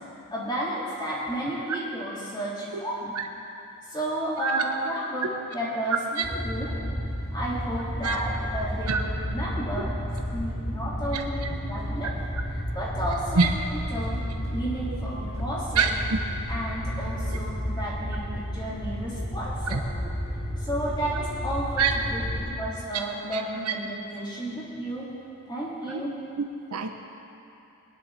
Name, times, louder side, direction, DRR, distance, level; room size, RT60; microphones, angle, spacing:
voice 1, 0.3-3.1 3.9-6.7 7.3-9.9 10.3-11.4 11.7-12.1 12.5-14.2 14.5-15.9 16.5-19.8 20.6-25.1 25.5-26.1, right 1 dB, 20° left, -7 dB, 3.3 m, -32 dB
voice 2, 2.7-2.8 4.4-4.6 6.2-6.3 8.0-8.2 8.9-9.0 11.1-11.2 13.4-13.5 15.7-15.9 19.7-19.8 21.8-21.9 23.3-23.4 25.9-26.0 26.7-26.9, right 5 dB, 80° right, 4 dB, 0.9 m, -23 dB
sound 1, 6.2-22.4, equal, 70° left, 3.2 m, -32 dB
21.0 x 10.5 x 4.2 m, 2.8 s
head